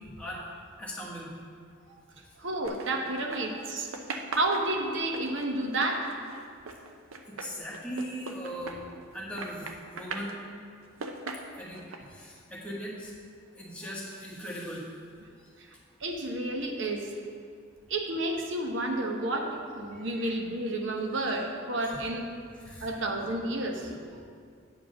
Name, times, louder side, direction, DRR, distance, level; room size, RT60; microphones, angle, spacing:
voice 1, 0.2-0.5 0.8-1.3 7.3-8.8 9.1-9.7 9.9-10.5 11.5-13.1 13.6-14.8 19.9-20.3 21.8-22.0 22.6-22.9, equal, 5° left, -5 dB, 1.3 m, -39 dB
voice 2, 2.4-3.9 4.3-6.1 15.6-15.7 16.0-17.1 17.9-22.2 22.8-24.2, right 2 dB, 65° right, 2 dB, 1.0 m, -31 dB
sound 1, 2.6-3.7 3.9-9.1 9.4-10.4 10.8-12.0, right 3 dB, 90° right, 0.7 m, -39 dB
8.8 x 4.8 x 6.3 m, 2.2 s
head